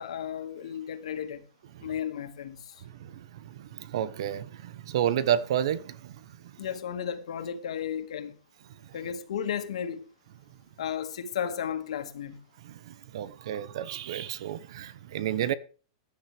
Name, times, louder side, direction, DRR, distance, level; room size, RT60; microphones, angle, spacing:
voice 1, 0.0-1.4 1.8-2.7 6.6-8.4 8.9-10.1 10.8-12.4, left 8 dB, 80° left, 2.2 m, -34 dB
voice 2, 2.8-6.2 6.4-6.5 12.6-15.5, right 10 dB, 55° right, 1.0 m, -31 dB
16.0 x 10.5 x 3.5 m
supercardioid pair, 175°, 3 cm